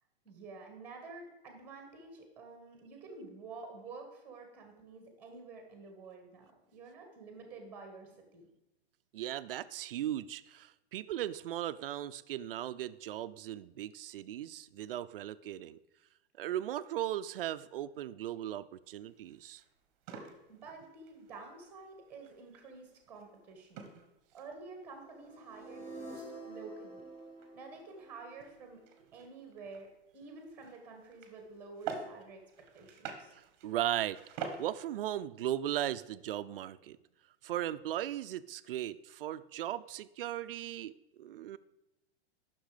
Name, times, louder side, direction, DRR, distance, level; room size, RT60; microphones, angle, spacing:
voice 1, 0.2-8.5 20.5-23.9 24.3-27.1 27.5-28.8 29.1-32.4 32.7-33.4, right 3 dB, 5° right, 4 dB, 1.3 m, -50 dB
voice 2, 9.1-15.8 16.4-19.6 33.3-34.2 34.6-37.0 37.4-41.6, right 12 dB, 60° right, 14 dB, 0.5 m, -37 dB
sound 1, 18.8-34.9, right 6 dB, 25° right, 1.0 m, -49 dB
sound 2, 25.0-29.1, right 2 dB, 15° left, 0.9 m, -48 dB
10.5 x 6.1 x 4.9 m, 0.93 s
supercardioid pair, 175°, 32 cm